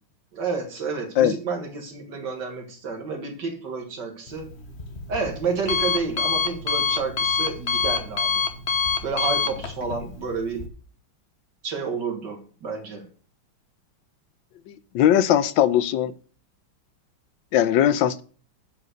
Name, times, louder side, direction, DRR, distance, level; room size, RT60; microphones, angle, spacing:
voice 1, 0.3-4.5 5.1-8.4 9.0-10.7 11.6-13.0, right 4 dB, 55° right, 4 dB, 2.3 m, -30 dB
Alarm, 4.3-10.7, left 5 dB, 40° left, 1.0 m, -27 dB
voice 2, 14.7-16.1 17.5-18.2, left 10 dB, 75° left, 15 dB, 1.3 m, -20 dB
8.4 x 5.0 x 6.4 m, 0.40 s
omnidirectional pair, 2.3 m